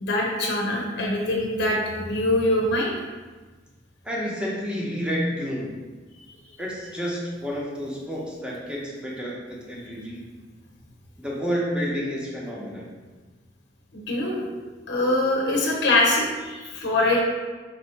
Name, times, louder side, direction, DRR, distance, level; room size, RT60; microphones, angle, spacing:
voice 1, 0.0-2.9 13.9-14.4 14.9-17.2, left 1 dB, 60° left, -1 dB, 0.7 m, -23 dB
voice 2, 4.0-5.7 6.6-10.2 11.2-12.9, equal, 5° right, -5 dB, 0.8 m, -30 dB
4.3 x 2.7 x 4.1 m, 1.3 s
head